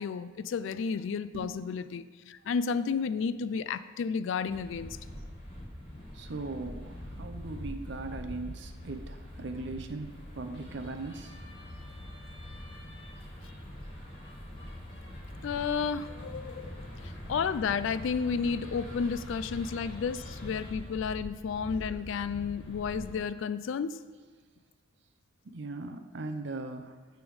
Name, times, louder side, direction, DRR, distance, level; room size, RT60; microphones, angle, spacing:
voice 1, 0.0-5.0 15.4-24.0, left 6 dB, 65° left, 14 dB, 0.3 m, -32 dB
sound 1, 1.2-1.7, left 2 dB, 80° right, 1.3 m, -43 dB
sound 2, 4.5-23.2, left 1 dB, 25° left, 1.8 m, -43 dB
voice 2, 6.1-11.4 25.4-27.0, right 3 dB, 60° right, 7 dB, 0.6 m, -39 dB
9.4 x 3.5 x 6.2 m, 1.5 s
head